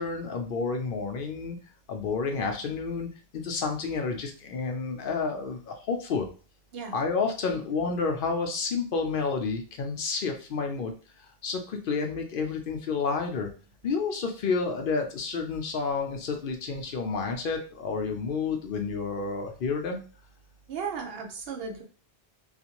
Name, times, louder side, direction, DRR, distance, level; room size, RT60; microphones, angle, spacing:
voice 1, 0.0-1.6 1.9-6.3 6.9-10.9 11.2-13.5 13.8-20.0, left 4 dB, 65° left, 4 dB, 0.7 m, -30 dB
voice 2, 20.7-21.8, right 6 dB, 65° right, 2 dB, 0.8 m, -35 dB
2.5 x 2.4 x 2.8 m, 0.37 s
omnidirectional pair, 1.1 m